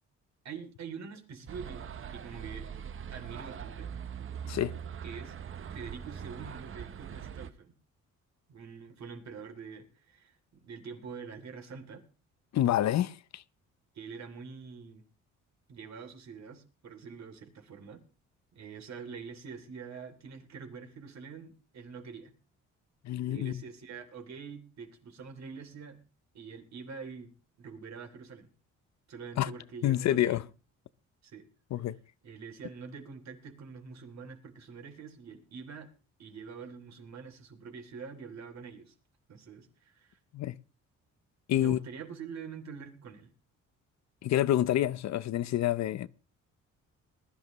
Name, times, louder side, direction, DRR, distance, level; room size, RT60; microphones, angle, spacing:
voice 1, 0.4-2.7 3.1-3.9 5.0-5.3 5.7-7.7 8.5-12.1 13.9-15.1 15.7-18.0 18.5-22.3 23.2-26.0 26.3-28.5 29.1-30.4 31.2-31.5 31.8-31.9 32.2-35.9 36.2-38.9 39.3-40.2 41.6-43.3, right 5 dB, 60° right, 3.1 m, -45 dB
sound 1, 1.5-7.5, right 8 dB, 45° right, 0.8 m, -42 dB
voice 2, 12.5-13.4 23.0-23.6 29.4-29.5 29.8-30.4 31.7-32.0 40.3-40.6 41.5-41.8 44.2-46.1, left 12 dB, 65° left, 0.7 m, -28 dB
20.0 x 12.0 x 3.1 m
cardioid pair, 90°, 30 cm